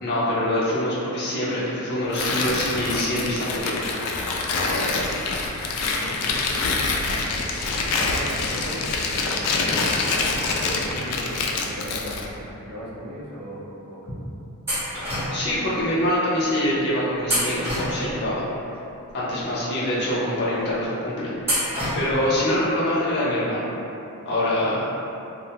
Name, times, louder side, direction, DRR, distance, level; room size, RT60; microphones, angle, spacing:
voice 1, 0.0-3.7 4.6-5.1 15.3-18.5 19.1-23.6 24.2-24.9, left 1 dB, 50° left, -8 dB, 0.6 m, -25 dB
Tearing, 2.1-12.3, left 3 dB, 90° left, 0.3 m, -26 dB
voice 2, 5.8-6.6 7.3-14.2 19.2-19.3, equal, 80° right, -6 dB, 0.6 m, -37 dB
sound 1, 14.7-15.6 17.2-18.3 21.4-22.3, equal, 10° right, 0.7 m, -26 dB
2.6 x 2.1 x 2.7 m, 2.8 s
head